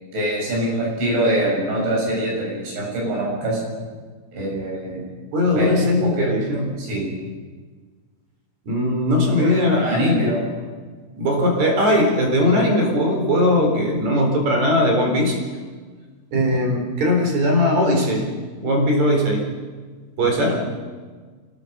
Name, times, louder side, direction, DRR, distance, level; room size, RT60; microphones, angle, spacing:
voice 1, 0.1-3.6 4.3-5.0 5.5-6.3 6.8-7.1 9.4-10.4 20.2-20.5, right 1 dB, 75° right, -3 dB, 9.4 m, -24 dB
voice 2, 5.3-6.7 8.7-10.4 11.2-15.4 16.3-18.3 18.6-19.5 20.2-20.6, left 1 dB, 40° right, 2 dB, 4.7 m, -19 dB
25.5 x 17.5 x 6.7 m, 1.5 s
omnidirectional pair, 5.3 m